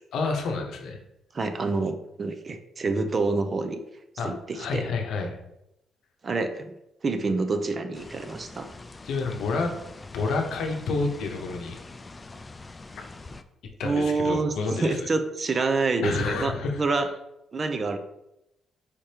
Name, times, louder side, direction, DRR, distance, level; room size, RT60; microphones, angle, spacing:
voice 1, 0.1-1.0 4.2-5.4 9.0-9.7 10.1-11.8 13.8-15.1 16.0-16.8, left 4 dB, 75° left, 2 dB, 0.7 m, -29 dB
voice 2, 1.3-3.8 4.2-4.9 6.2-6.7 7.0-8.7 13.8-17.1 17.5-18.0, right 3 dB, 40° right, 8 dB, 0.5 m, -27 dB
sound 1, 7.9-13.4, left 3 dB, 25° left, 0.3 m, -44 dB
4.9 x 3.3 x 2.8 m, 0.86 s
supercardioid pair, 70°, 0 cm